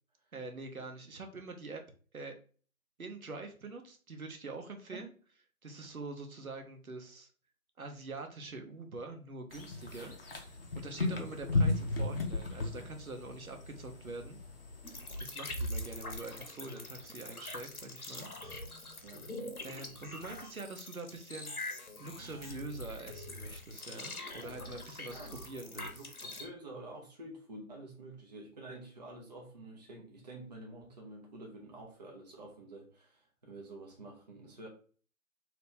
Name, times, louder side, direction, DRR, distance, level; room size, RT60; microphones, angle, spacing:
voice 1, 0.3-1.8 2.1-2.4 3.0-5.1 5.6-7.3 7.8-10.1 10.4-14.4 15.2-18.3 19.6-21.5 22.0-25.9, right 3 dB, 75° right, 4 dB, 1.0 m, -45 dB
sound 1, 9.5-15.2, left 2 dB, 40° left, 0.7 m, -35 dB
sound 2, 14.8-26.5, left 1 dB, 85° left, 1.1 m, -43 dB
voice 2, 26.4-34.7, right 2 dB, 30° right, -2 dB, 0.7 m, -49 dB
2.9 x 2.9 x 3.5 m, 0.41 s
figure-of-eight pair, 150°, 43 cm